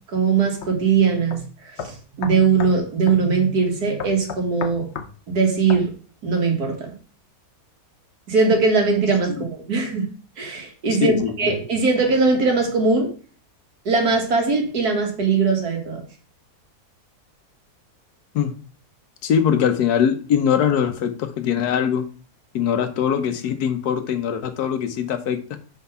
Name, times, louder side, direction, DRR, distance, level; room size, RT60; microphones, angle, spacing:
voice 1, 0.1-4.9 5.3-5.9 6.2-6.9 8.3-10.1 10.4-13.1 13.9-16.0, right 4 dB, 80° right, 2 dB, 2.1 m, -20 dB
sound 1, 0.6-0.7 1.3-1.4 1.8-2.8 3.1-3.2 4.0-5.1 5.7-5.9, left 7 dB, 55° left, 0.9 m, -32 dB
voice 2, 11.0-11.5 18.3-18.5 19.2-22.1 22.5-25.4, left 8 dB, 80° left, 9 dB, 1.3 m, -22 dB
5.8 x 4.6 x 5.5 m, 0.40 s
omnidirectional pair, 1.6 m